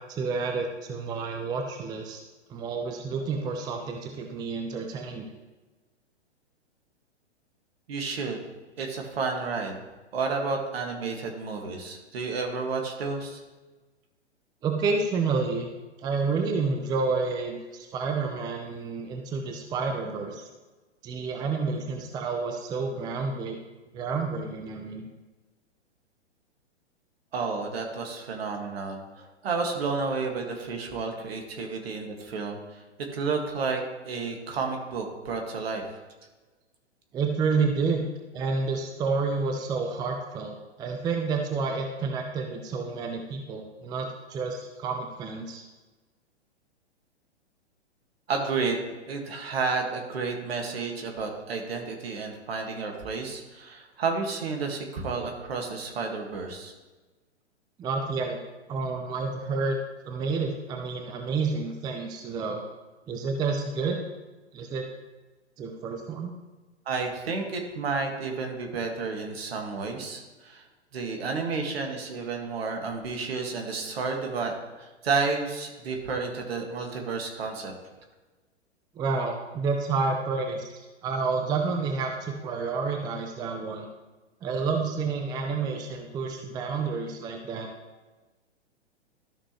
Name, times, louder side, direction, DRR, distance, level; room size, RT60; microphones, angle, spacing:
voice 1, 0.0-2.2 2.5-5.3 14.6-15.7 16.0-20.4 21.0-23.6 23.9-25.1 37.1-38.0 38.3-45.6 57.8-58.4 58.7-59.8 60.0-62.6 63.1-64.0 64.5-64.9 65.6-66.3 79.0-83.9 84.4-87.7, right 4 dB, 10° right, 3 dB, 0.5 m, -29 dB
voice 2, 7.9-8.4 8.8-9.8 10.1-13.4 27.3-32.8 33.1-35.8 48.3-56.7 66.9-70.6 70.9-77.7, right 4 dB, 60° right, 3 dB, 1.9 m, -31 dB
13.0 x 6.1 x 3.1 m, 1.2 s
figure-of-eight pair, 115°, 34 cm